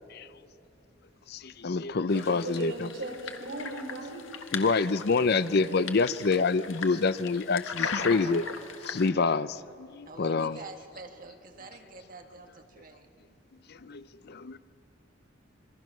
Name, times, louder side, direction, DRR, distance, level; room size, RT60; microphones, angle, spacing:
voice 1, 1.3-2.9 4.5-8.4 8.9-10.6 13.7-14.6, left 4 dB, 55° left, 15 dB, 0.6 m, -27 dB
sound 1, 2.1-9.1, left 5 dB, 90° left, 1.6 m, -38 dB
voice 2, 2.1-4.2 5.0-5.3 5.6-6.0, right 2 dB, 70° right, 0 dB, 5.2 m, -39 dB
voice 3, 10.1-13.1, right 3 dB, 45° right, 4 dB, 1.8 m, -47 dB
27.0 x 22.0 x 6.2 m, 2.6 s
head